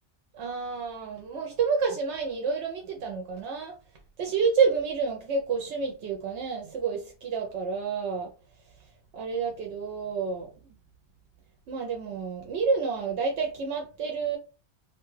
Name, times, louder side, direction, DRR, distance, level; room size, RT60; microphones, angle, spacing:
voice 1, 0.3-3.7 4.2-8.3 9.1-10.7 11.7-14.4, right 5 dB, 80° right, 0.9 m, -29 dB
2.7 x 2.2 x 3.1 m
omnidirectional pair, 1.2 m